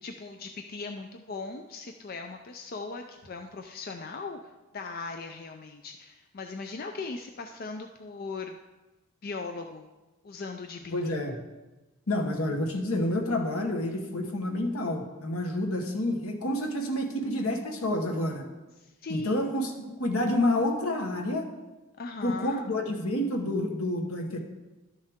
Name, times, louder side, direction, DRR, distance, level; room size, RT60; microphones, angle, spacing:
voice 1, 0.0-4.4 4.7-8.6 9.2-9.9 10.2-11.1 18.8-19.3 19.9-20.0 22.0-22.6, left 4 dB, 40° left, 4 dB, 0.4 m, -39 dB
voice 2, 10.9-11.4 12.1-18.5 19.1-21.5 22.2-24.4, left 1 dB, 80° left, 3 dB, 1.3 m, -29 dB
12.0 x 6.5 x 3.6 m, 1.1 s
head